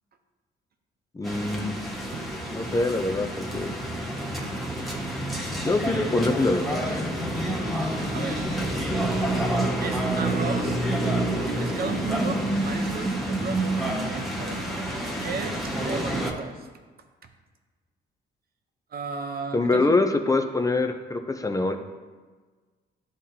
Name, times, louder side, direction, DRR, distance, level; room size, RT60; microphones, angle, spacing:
voice 1, 1.1-1.7 2.5-3.7 5.6-7.1 19.5-21.8, left 3 dB, 15° left, 6 dB, 0.6 m, -25 dB
sound 1, 1.2-16.3, right 1 dB, ahead, 1.1 m, -28 dB
voice 2, 8.1-8.5 9.8-10.8 11.4-14.6 15.2-16.7 18.9-20.0, right 5 dB, 50° right, 5 dB, 0.8 m, -34 dB
11.0 x 3.8 x 2.9 m, 1.4 s
cardioid pair, 90°, 20 cm